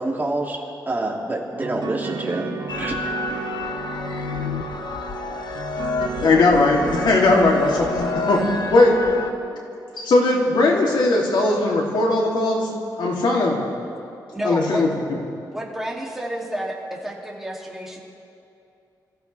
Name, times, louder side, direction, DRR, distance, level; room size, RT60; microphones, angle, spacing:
voice 1, 0.0-3.0, right 2 dB, 25° right, -2 dB, 2.7 m, -27 dB
sound 1, 1.6-9.5, right 5 dB, 85° right, 1.9 m, -33 dB
sound 2, 2.7-9.3, left 5 dB, 65° left, 0.9 m, -30 dB
voice 2, 6.2-8.4 8.7-9.0 10.0-13.6 14.4-14.9, left 2 dB, 80° left, -2 dB, 3.0 m, -18 dB
voice 3, 14.3-14.8 15.5-18.0, equal, 5° right, -3 dB, 2.8 m, -30 dB
26.5 x 15.5 x 3.5 m, 2.7 s
wide cardioid pair, 115°, 8 cm